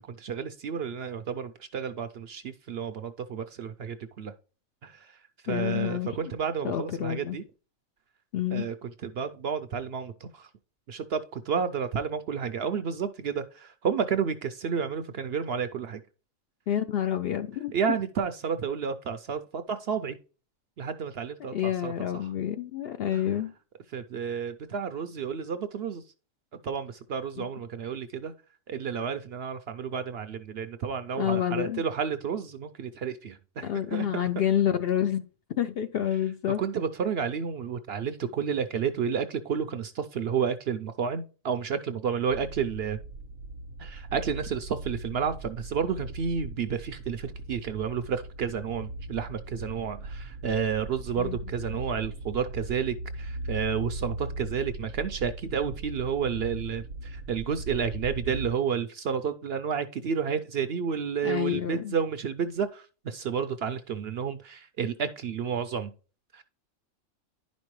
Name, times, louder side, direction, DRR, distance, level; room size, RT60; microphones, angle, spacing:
voice 1, 0.1-4.3 4.8-5.1 5.4-7.4 8.5-10.5 10.9-16.0 17.7-20.2 20.8-22.2 23.1-23.3 23.9-26.0 26.6-28.3 28.7-34.1 36.6-43.0 43.8-65.9 66.3-66.4, right 7 dB, 60° right, 0.7 m, -31 dB
voice 2, 5.5-6.3 6.6-7.4 8.3-8.7 16.7-17.7 21.5-23.5 27.4-27.5 31.2-31.8 33.6-35.2 35.6-36.6 51.2-51.4 61.2-62.0, left 10 dB, 65° left, 0.6 m, -28 dB
sound 1, 42.3-58.5, right 2 dB, 90° right, 1.1 m, -39 dB
10.5 x 5.2 x 3.1 m
omnidirectional pair, 1.4 m